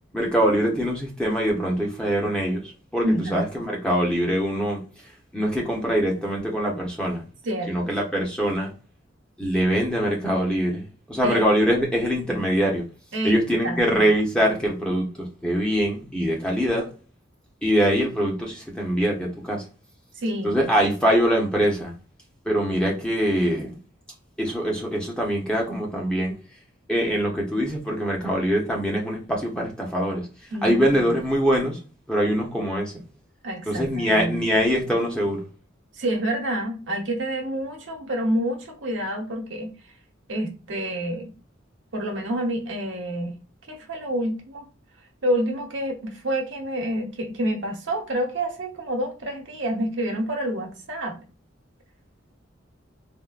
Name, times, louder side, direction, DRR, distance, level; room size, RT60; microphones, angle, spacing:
voice 1, 0.1-4.8 5.3-7.2 7.7-8.7 9.4-12.8 13.2-16.9 17.6-19.6 20.4-21.9 22.5-23.8 24.4-26.3 26.9-30.2 30.6-31.8 32.1-32.9 33.7-35.4, equal, 5° left, 0.7 m, -23 dB
voice 2, 3.0-3.5 7.4-7.9 11.2-11.4 13.1-13.8 20.2-20.6 30.5-31.2 33.4-34.4 36.0-39.7 40.3-41.3 41.9-43.4 43.7-44.6 45.2-51.2, right 1 dB, 75° right, 1.0 m, -28 dB
3.5 x 2.1 x 2.3 m
head